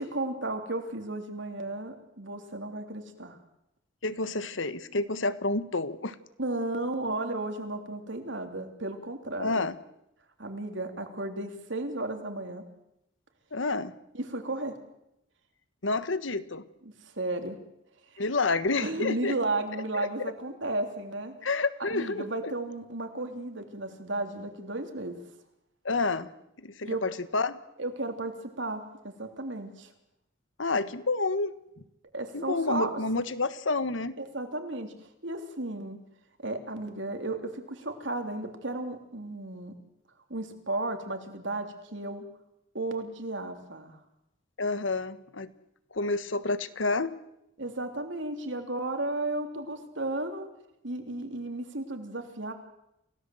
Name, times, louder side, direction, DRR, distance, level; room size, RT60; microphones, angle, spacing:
voice 1, 0.0-3.4 6.4-9.7 10.4-12.6 14.1-14.7 17.0-17.6 18.8-21.3 21.9-25.2 26.8-27.0 27.8-29.9 32.1-33.0 34.2-34.9 35.2-36.0 36.4-39.7 40.3-42.2 42.7-44.0 47.6-50.5 50.8-52.5, right 2 dB, 70° right, 6 dB, 3.3 m, -34 dB
voice 2, 4.0-6.1 9.4-9.7 13.5-13.9 15.8-16.6 18.2-19.4 19.9-20.3 21.4-22.5 25.8-26.3 26.6-27.6 30.6-31.5 32.3-34.1 44.6-45.5 45.9-47.1, left 3 dB, 75° left, 14 dB, 1.4 m, -29 dB
29.0 x 17.5 x 7.8 m, 0.82 s
head